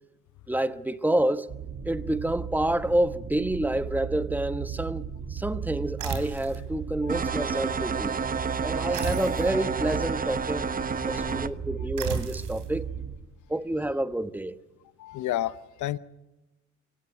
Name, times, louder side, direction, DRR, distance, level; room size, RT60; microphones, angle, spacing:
voice 1, 0.5-1.5 1.8-5.0 5.3-8.2 8.6-10.7 11.1-12.9 13.5-14.6, right 1 dB, 5° right, 1.0 m, -28 dB
sound 1, 1.5-13.1, right 7 dB, 60° right, 5.7 m, -37 dB
sound 2, 6.0-6.7 8.9-9.6 12.0-12.7, right 6 dB, 75° right, 3.6 m, -33 dB
sound 3, 7.1-11.5, right 5 dB, 30° right, 0.8 m, -30 dB
voice 2, 8.7-9.2 11.0-11.4 15.0-16.0, left 13 dB, 75° left, 0.8 m, -33 dB
24.0 x 16.5 x 9.6 m
cardioid pair, 90°, 30 cm